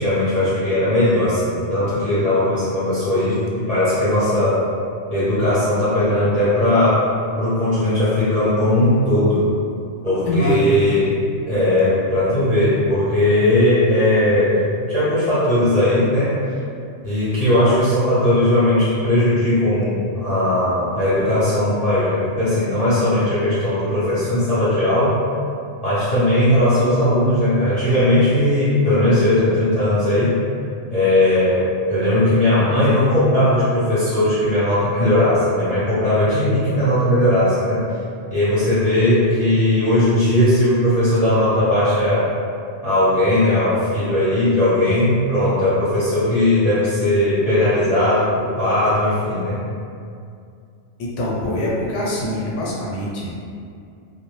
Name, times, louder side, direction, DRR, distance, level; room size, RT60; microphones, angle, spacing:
voice 1, 0.0-4.6 5.1-7.0 7.4-9.5 10.0-11.1 11.4-16.4 17.0-25.2 25.8-30.4 30.9-37.8 38.3-42.3 42.8-49.6, left 1 dB, 40° left, -14 dB, 0.7 m, -18 dB
voice 2, 10.2-10.8 51.0-53.4, left 1 dB, 80° left, -5 dB, 0.9 m, -24 dB
2.2 x 2.1 x 3.0 m, 2.4 s
omnidirectional pair, 1.2 m